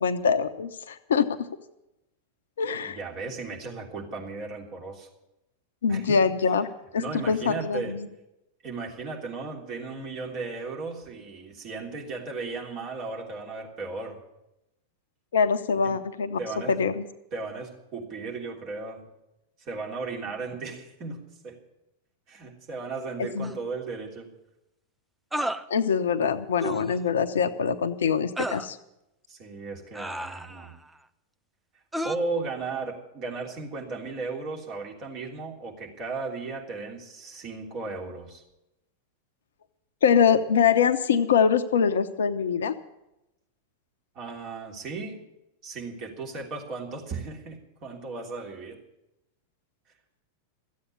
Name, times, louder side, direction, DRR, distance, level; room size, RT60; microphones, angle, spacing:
voice 1, 0.0-1.5 2.6-3.0 5.8-6.7 6.9-8.1 15.3-16.4 16.7-17.0 23.2-23.5 25.7-28.8 40.0-42.7, left 6 dB, 65° left, 11 dB, 0.8 m, -24 dB
voice 2, 2.8-5.1 5.9-6.2 7.0-8.0 8.6-14.2 15.8-16.0 16.4-16.8 17.3-19.1 19.6-21.6 22.3-24.3 29.3-30.7 32.0-38.4 44.1-45.2 45.6-48.8, right 3 dB, 35° right, 0 dB, 3.2 m, -35 dB
sound 1, 23.4-23.5 25.3-25.6 26.6-26.9 28.4-28.7 29.9-30.7 31.9-32.2, right 1 dB, 5° right, 0.6 m, -32 dB
13.5 x 8.5 x 9.6 m, 0.89 s
figure-of-eight pair, 90°, 0 cm